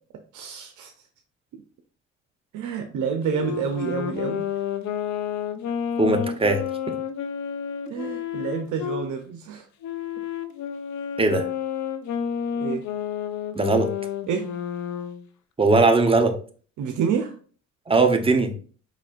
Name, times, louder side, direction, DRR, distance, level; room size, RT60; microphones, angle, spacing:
voice 1, 0.3-0.9 1.5-1.6 2.5-4.5 7.9-9.7 12.6-12.8 14.3-14.5 16.8-17.3, right 6 dB, 80° right, 4 dB, 0.7 m, -28 dB
Wind instrument woodwind instrument, 3.2-9.1 9.8-15.2, left 8 dB, 70° left, 0.7 m, -30 dB
voice 2, 6.0-6.6 11.2-11.5 13.6-13.9 15.6-16.3 17.9-18.5, right 3 dB, 20° right, 6 dB, 0.8 m, -19 dB
5.0 x 4.0 x 2.4 m, 0.41 s
cardioid pair, 90°, 30 cm